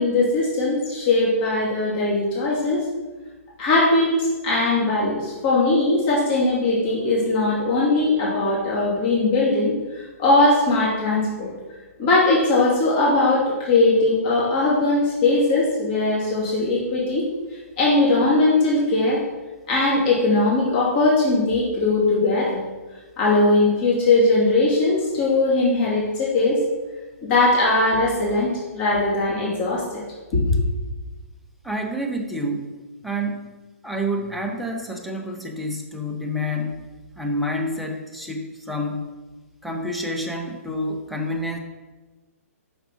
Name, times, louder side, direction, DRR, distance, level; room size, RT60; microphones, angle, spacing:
voice 1, 0.0-2.8 3.6-11.5 12.0-17.3 17.8-19.2 19.7-22.6 23.2-26.6 27.2-30.0 30.3-30.4, left 2 dB, 40° left, -6 dB, 2.8 m, -20 dB
voice 2, 31.6-32.7 33.0-33.5 33.8-36.8 37.2-39.1 39.6-41.6, equal, ahead, 0 dB, 0.8 m, -28 dB
6.0 x 5.7 x 5.5 m, 1.2 s
hypercardioid pair, 140°, 8 cm